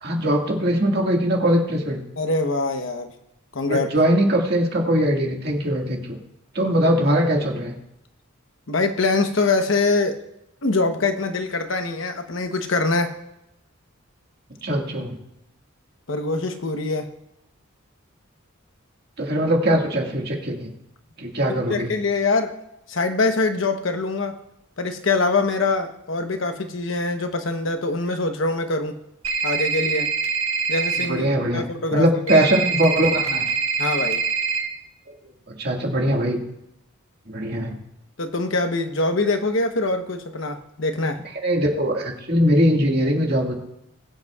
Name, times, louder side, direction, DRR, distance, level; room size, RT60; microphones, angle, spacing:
voice 1, 0.0-2.0 3.7-6.2 6.5-7.8 14.6-15.2 19.2-20.7 21.2-21.9 31.0-31.6 31.9-33.5 35.6-36.4 37.3-37.7 41.4-43.5, equal, 50° right, 0 dB, 1.9 m, -21 dB
voice 2, 2.2-3.1 3.5-3.9 8.7-10.2 10.6-13.1 16.1-17.1 21.5-22.5 22.9-24.4 24.8-28.9 29.4-30.1 30.7-31.3 31.5-32.5 33.8-34.2 38.2-41.2, left 3 dB, 65° left, 6 dB, 1.0 m, -23 dB
sound 1, 29.2-31.1 32.3-34.6, right 5 dB, 85° right, 1.6 m, -24 dB
21.0 x 8.0 x 2.4 m, 0.83 s
head